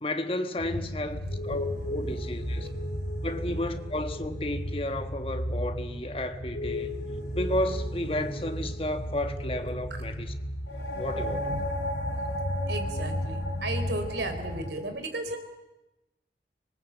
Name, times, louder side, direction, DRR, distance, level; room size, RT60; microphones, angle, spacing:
voice 1, 0.0-2.7 3.2-6.9 7.3-10.3 11.0-11.5, left 1 dB, 30° left, 1.5 m, -32 dB
sound 1, 0.6-14.7, equal, 85° left, 2.4 m, -33 dB
voice 2, 1.1-2.1 2.6-2.7 9.9-10.0 11.5-11.6 12.7-15.4, right 1 dB, 80° right, 3.9 m, -35 dB
26.0 x 20.0 x 8.1 m
head